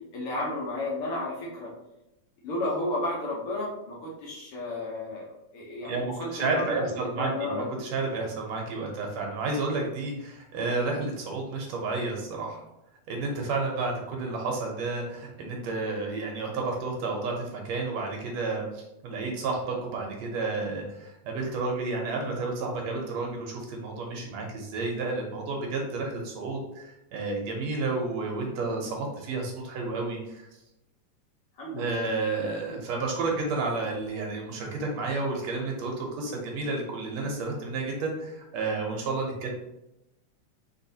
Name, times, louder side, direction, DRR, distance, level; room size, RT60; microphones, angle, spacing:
voice 1, 0.0-1.7 2.4-7.7 31.6-32.1, left 2 dB, 65° left, -4 dB, 1.6 m, -33 dB
voice 2, 5.8-12.6 13.1-30.4 31.7-39.5, right 3 dB, 70° right, 0 dB, 1.8 m, -31 dB
4.4 x 3.9 x 2.7 m, 0.91 s
omnidirectional pair, 3.4 m